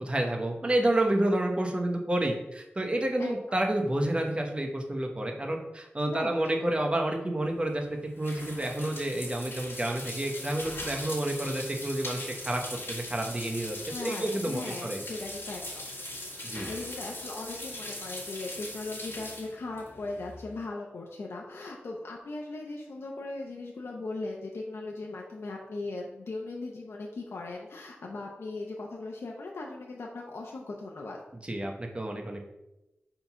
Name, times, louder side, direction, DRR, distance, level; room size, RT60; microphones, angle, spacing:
voice 1, 0.0-12.6 12.9-15.0 16.4-16.7 31.4-32.4, right 1 dB, 25° right, 2 dB, 0.9 m, -29 dB
voice 2, 3.2-3.6 6.1-6.4 13.9-15.9 16.6-31.2, left 2 dB, 90° left, -1 dB, 0.7 m, -38 dB
sound 1, 7.4-20.6, left 1 dB, 70° left, 1.8 m, -40 dB
4.6 x 3.8 x 5.5 m, 0.96 s
wide cardioid pair, 85°, 4 cm